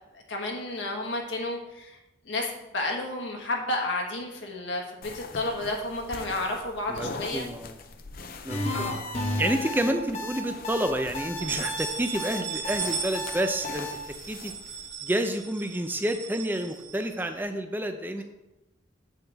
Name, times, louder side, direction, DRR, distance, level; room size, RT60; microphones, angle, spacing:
voice 1, 0.1-2.0 2.2-7.5 8.7-9.0, left 2 dB, 80° left, 1 dB, 1.6 m, -31 dB
sound 1, 5.0-14.9, left 4 dB, 50° left, 0.6 m, -43 dB
voice 2, 6.9-7.8 8.4-8.9 9.4-13.9 14.3-14.5 15.0-18.2, right 1 dB, 10° right, 7 dB, 0.6 m, -29 dB
sound 2, 8.5-13.9, left 2 dB, 35° left, 1.0 m, -32 dB
sound 3, 8.7-9.6 10.0-10.1 10.5-10.6 11.2-17.4, right 6 dB, 70° right, 1.8 m, -37 dB
8.2 x 7.6 x 3.5 m, 0.95 s
head